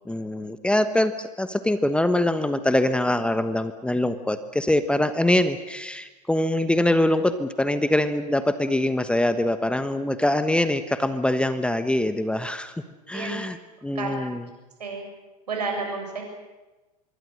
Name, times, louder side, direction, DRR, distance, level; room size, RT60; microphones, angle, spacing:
voice 1, 0.0-12.7 13.1-13.6 13.8-14.4, left 1 dB, 5° left, 11 dB, 1.2 m, -23 dB
voice 2, 15.5-16.2, right 4 dB, 75° right, 2 dB, 7.2 m, -30 dB
25.0 x 23.0 x 6.5 m, 1.1 s
figure-of-eight pair, 85°, 21 cm